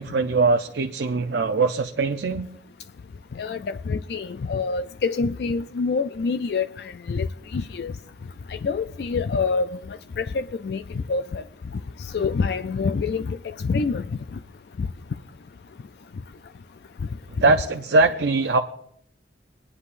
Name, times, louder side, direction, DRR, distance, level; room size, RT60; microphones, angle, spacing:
voice 1, 0.0-2.5 17.4-18.6, right 3 dB, 80° right, 0.5 m, -21 dB
voice 2, 3.9-6.7 7.1-7.3 7.5-7.9 8.6-9.7 10.2-10.8 11.1-11.4 12.1-14.0 14.8-14.9, left 4 dB, 65° left, 0.4 m, -26 dB
22.0 x 9.8 x 2.5 m
head